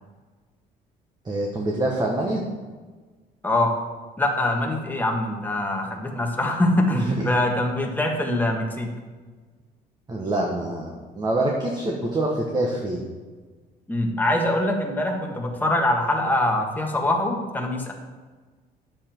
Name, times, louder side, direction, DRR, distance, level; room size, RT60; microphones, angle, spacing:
voice 1, 1.2-2.4 6.9-7.3 10.1-13.1, right 1 dB, 25° right, -1 dB, 1.3 m, -25 dB
voice 2, 4.2-8.9 13.9-17.9, left 1 dB, 10° left, 1 dB, 1.6 m, -23 dB
9.7 x 7.5 x 4.6 m, 1.4 s
cardioid pair, 110°, 17 cm